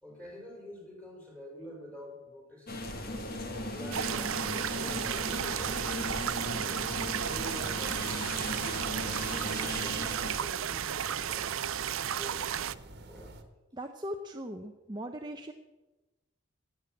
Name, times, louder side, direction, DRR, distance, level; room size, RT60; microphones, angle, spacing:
voice 1, 0.0-2.8 3.7-6.0 7.2-10.0 10.3-11.6 12.0-12.6 13.1-13.4, equal, 5° left, 0 dB, 4.1 m, -47 dB
sound 1, 2.7-10.3, left 1 dB, 45° left, 1.7 m, -37 dB
sound 2, 3.9-12.7, right 10 dB, 70° right, 0.5 m, -33 dB
sound 3, 5.1-13.4, right 2 dB, 50° right, 1.4 m, -47 dB
voice 2, 13.7-15.5, equal, 20° right, 4 dB, 0.7 m, -39 dB
15.5 x 9.3 x 7.3 m, 1.1 s
head